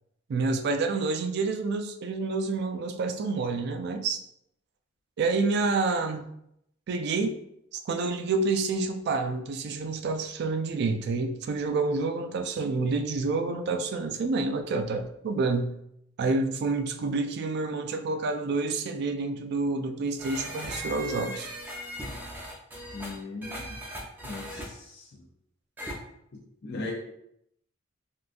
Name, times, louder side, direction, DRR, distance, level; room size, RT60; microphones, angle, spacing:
voice 1, 0.3-4.2 5.2-6.3 6.9-7.4 7.7-15.8 16.2-21.5, right 3 dB, 55° right, 7 dB, 0.3 m, -28 dB
sound 1, 20.2-24.6 25.8-25.9, equal, 10° right, 0.5 m, -38 dB
voice 2, 22.9-23.8 24.2-25.1 26.6-26.9, left 3 dB, 55° left, -3 dB, 0.5 m, -38 dB
3.7 x 2.3 x 2.4 m, 0.77 s
head